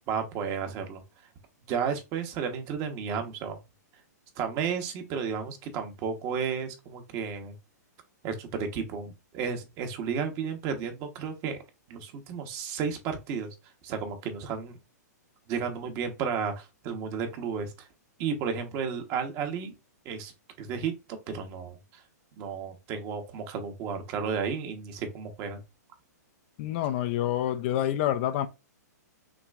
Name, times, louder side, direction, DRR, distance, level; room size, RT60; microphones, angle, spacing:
voice 1, 0.1-1.0 1.7-3.6 4.4-7.5 8.2-11.6 11.9-13.5 13.8-14.8 15.5-17.9 18.2-19.7 20.0-20.3 20.6-22.0 22.4-25.6, right 6 dB, 30° right, 1.2 m, -33 dB
voice 2, 26.6-28.5, left 12 dB, 40° left, 0.6 m, -27 dB
6.0 x 3.0 x 2.4 m
hypercardioid pair, 145°, 10 cm